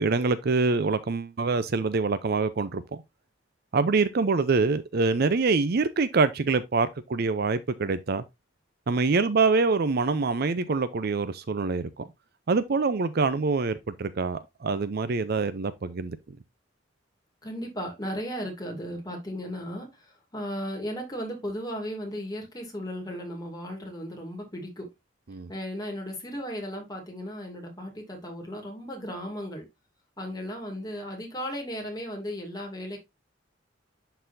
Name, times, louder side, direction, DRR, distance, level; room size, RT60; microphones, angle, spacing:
voice 1, 0.0-2.8 3.7-8.2 8.9-12.1 12.5-16.2 25.3-25.5, right 4 dB, 50° right, 0.5 m, -25 dB
voice 2, 17.4-19.9 20.3-24.9 25.5-29.7 30.2-33.0, equal, 20° left, 2.4 m, -35 dB
11.0 x 4.0 x 2.6 m
head